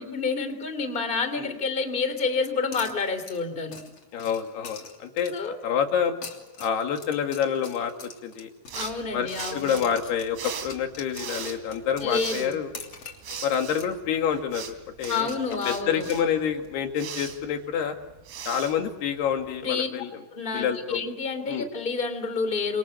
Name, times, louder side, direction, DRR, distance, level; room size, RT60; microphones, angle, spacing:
voice 1, 0.0-3.8 5.3-5.6 8.7-9.8 12.0-12.5 15.1-16.1 19.6-19.9 20.3-22.8, left 4 dB, 15° left, 9 dB, 2.7 m, -29 dB
sound 1, 2.7-5.5 6.1-9.0 9.3-14.0 14.2-14.3 15.0-16.7, left 4 dB, 40° left, 3.7 m, -44 dB
voice 2, 4.1-6.2 6.6-7.9 8.2-8.5 9.1-12.7 13.4-14.6 15.0-18.0 18.5-20.1 20.5-21.0 21.5-21.7, left 8 dB, 85° left, 5 dB, 4.2 m, -27 dB
sound 2, 8.7-19.6, right 7 dB, 90° right, 4.9 m, -40 dB
28.5 x 25.5 x 7.8 m, 1.0 s
omnidirectional pair, 4.5 m